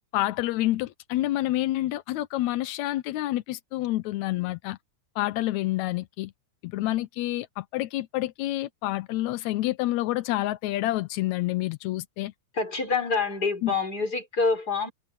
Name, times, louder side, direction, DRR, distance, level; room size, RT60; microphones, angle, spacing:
voice 1, 0.1-4.8 5.1-6.3 6.6-12.3 13.6-13.7, left 16 dB, 80° left, 1.6 m, -28 dB
voice 2, 12.5-14.9, left 4 dB, 25° left, 6.0 m, -26 dB
omnidirectional pair, 4.0 m